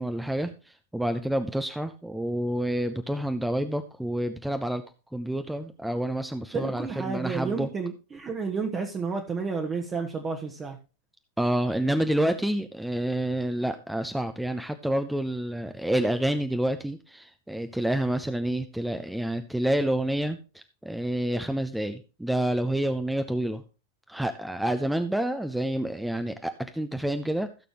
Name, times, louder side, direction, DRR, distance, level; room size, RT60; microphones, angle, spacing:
voice 1, 0.0-4.8 5.1-7.7 11.4-23.6 24.1-27.5, right 1 dB, 5° right, 8 dB, 0.8 m, -28 dB
voice 2, 6.5-10.8, right 5 dB, 20° right, 2 dB, 1.4 m, -31 dB
16.0 x 6.9 x 3.1 m, 0.31 s
figure-of-eight pair, 90°, 0 cm